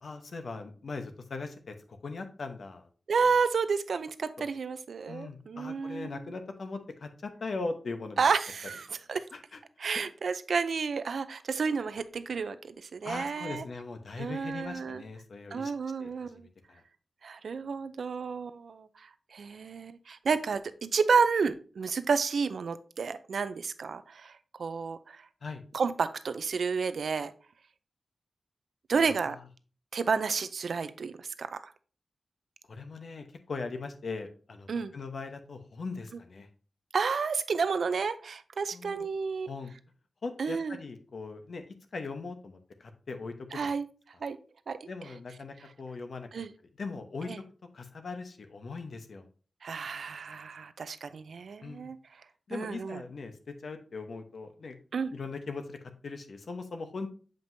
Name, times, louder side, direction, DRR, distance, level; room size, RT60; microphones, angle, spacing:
voice 1, 0.0-1.7 2.0-2.9 4.4-4.5 5.1-8.2 9.3-9.6 9.9-10.0 13.0-15.7 16.0-16.8 25.4-25.6 28.9-29.4 32.7-36.5 38.7-39.1 39.5-39.7 40.2-41.6 41.9-43.7 44.9-46.3 46.8-47.3 47.7-49.3 51.6-51.9 52.5-54.8 55.1-57.1, left 3 dB, 65° left, 7 dB, 0.9 m, -40 dB
voice 2, 3.1-6.1 8.2-9.2 9.8-13.6 14.2-15.0 15.5-16.5 17.2-24.3 24.6-25.2 25.7-27.3 28.9-29.4 29.9-31.7 34.7-34.9 36.9-39.5 40.4-40.8 43.5-43.9 44.2-44.4 44.7-44.8 46.3-46.5 47.3-47.4 49.6-52.0 52.5-53.0 54.9-55.1, right 5 dB, 80° right, 13 dB, 0.5 m, -31 dB
7.6 x 5.2 x 2.7 m, 0.39 s
wide cardioid pair, 135°, 0 cm